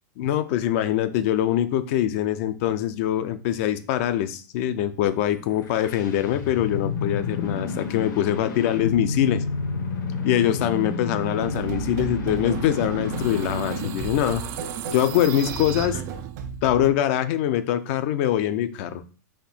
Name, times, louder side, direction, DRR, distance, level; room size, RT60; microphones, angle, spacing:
voice 1, 0.2-9.4 10.2-14.4 14.9-16.0 16.6-19.0, left 11 dB, 45° left, 11 dB, 0.4 m, -23 dB
sound 1, 5.5-14.1, left 4 dB, 75° left, 1.3 m, -30 dB
sound 2, 11.4-16.9, right 5 dB, 55° right, 1.0 m, -36 dB
sound 3, 12.4-16.6, right 11 dB, 30° right, 0.3 m, -36 dB
4.2 x 2.7 x 4.2 m, 0.37 s
hypercardioid pair, 145°, 10 cm